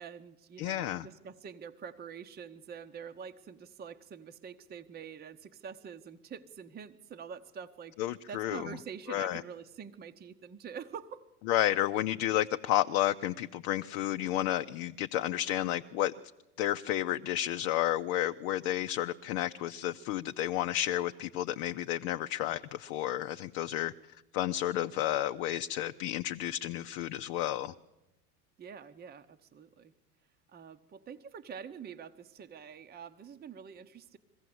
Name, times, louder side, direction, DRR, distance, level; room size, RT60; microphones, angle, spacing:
voice 1, 0.0-11.3 28.6-29.9 30.5-34.2, right 7 dB, 20° right, 8 dB, 0.9 m, -46 dB
voice 2, 0.6-1.1 8.0-8.8 9.1-9.4 11.5-16.1 16.6-23.9 24.3-27.7, left 13 dB, 55° left, 7 dB, 0.7 m, -31 dB
21.5 x 16.0 x 7.8 m, 0.98 s
hypercardioid pair, 90°, 49 cm